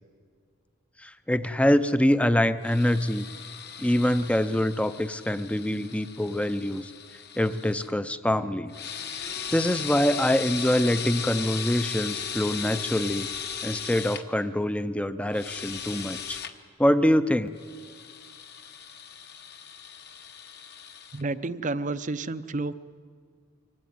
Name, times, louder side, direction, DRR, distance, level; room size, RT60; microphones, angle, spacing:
voice 1, 1.0-3.2 3.8-6.9 7.4-8.7 9.2-13.3 13.6-16.4 16.8-17.5, left 1 dB, 5° left, 12 dB, 0.6 m, -25 dB
sound 1, 2.6-7.9 8.7-14.2 15.3-16.5 17.6-21.2, left 7 dB, 50° left, 1.2 m, -37 dB
voice 2, 21.1-22.7, right 3 dB, 35° right, 14 dB, 0.6 m, -30 dB
24.5 x 17.0 x 9.4 m, 2.1 s
head